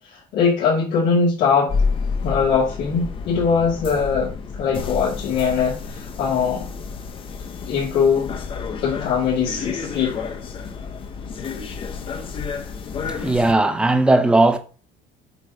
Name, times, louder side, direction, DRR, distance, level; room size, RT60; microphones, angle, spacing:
voice 1, 0.3-1.7 2.2-6.7 7.7-8.3 8.8-10.2, left 6 dB, 65° left, 2.4 m, -21 dB
sound 1, 1.7-13.5, left 5 dB, 30° left, 0.8 m, -30 dB
voice 2, 13.0-14.6, right 2 dB, 5° right, 0.6 m, -17 dB
7.8 x 3.1 x 5.0 m
cardioid pair, 165°, 18 cm